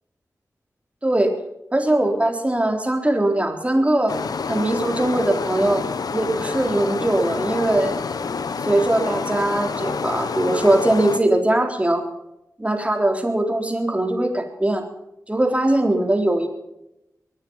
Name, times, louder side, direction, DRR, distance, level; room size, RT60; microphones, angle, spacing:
voice 1, 1.0-1.3 1.7-4.2 4.5-5.8 6.1-7.9 8.6-12.0 12.6-14.8 15.3-16.5, right 1 dB, 20° right, 3 dB, 3.9 m, -20 dB
sound 1, 4.1-11.2, left 5 dB, 80° left, 1.0 m, -28 dB
23.0 x 9.5 x 5.6 m, 0.86 s
cardioid pair, 45°, 6 cm